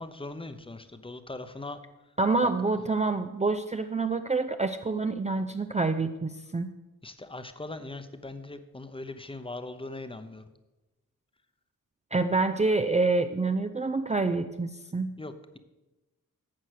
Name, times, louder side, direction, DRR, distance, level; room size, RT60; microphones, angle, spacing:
voice 1, 0.0-1.8 2.4-2.5 7.0-10.5 15.2-15.6, left 2 dB, 15° left, 10 dB, 0.9 m, -40 dB
voice 2, 2.2-6.7 12.1-15.1, right 3 dB, 20° right, 8 dB, 0.5 m, -27 dB
12.5 x 7.9 x 6.4 m, 1.1 s
wide cardioid pair, 105°, 33 cm